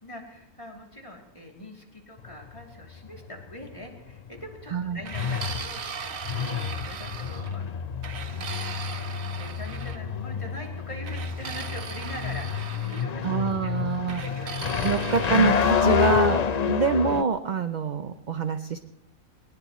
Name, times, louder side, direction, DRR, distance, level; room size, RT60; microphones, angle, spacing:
voice 1, 0.0-13.9 14.2-14.9, left 1 dB, 20° left, -1 dB, 3.0 m, -43 dB
sound 1, 2.2-17.2, left 6 dB, 50° left, 0.5 m, -28 dB
voice 2, 4.7-5.0 13.2-14.2 14.8-16.4 16.7-18.8, right 5 dB, 50° right, 9 dB, 0.5 m, -25 dB
sound 2, 5.0-7.6 8.0-10.0 11.0-13.1 14.1-16.2, right 6 dB, 70° right, 1.5 m, -39 dB
20.0 x 19.5 x 3.1 m, 0.88 s
omnidirectional pair, 1.5 m